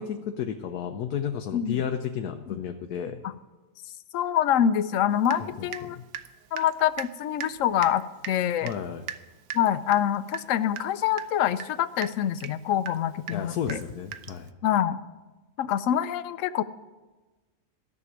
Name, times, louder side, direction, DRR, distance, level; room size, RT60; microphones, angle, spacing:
voice 1, 0.0-3.2 5.4-6.0 8.6-9.0 13.3-14.5, left 8 dB, 90° left, 5 dB, 1.2 m, -32 dB
voice 2, 4.1-6.0 6.5-8.7 9.5-13.8 14.6-15.0 15.6-16.6, left 10 dB, 65° left, 13 dB, 0.9 m, -25 dB
Water tap faucet / Drip, 5.3-5.9 6.1-14.5, right 9 dB, 80° right, 1.2 m, -40 dB
13.5 x 6.8 x 9.7 m, 1.2 s
omnidirectional pair, 1.5 m